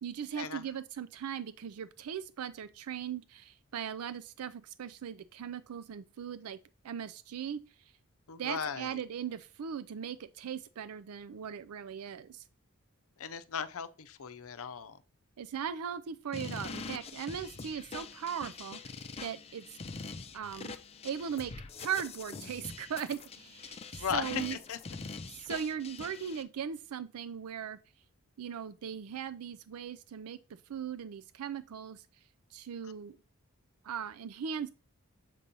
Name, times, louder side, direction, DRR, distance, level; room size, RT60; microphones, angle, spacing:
voice 1, 0.0-6.6 6.8-7.6 8.4-12.4 15.4-19.8 20.3-20.8 21.0-21.5 21.8-24.6 25.4-27.8 28.4-30.4 30.7-32.0 32.5-33.2 33.8-34.7, right 8 dB, 75° right, 0.4 m, -39 dB
voice 2, 8.3-8.9 13.2-15.0 24.0-24.8, left 7 dB, 65° left, 0.6 m, -37 dB
sound 1, 16.3-26.4, left 4 dB, 30° left, 0.5 m, -44 dB
7.5 x 2.9 x 5.3 m
head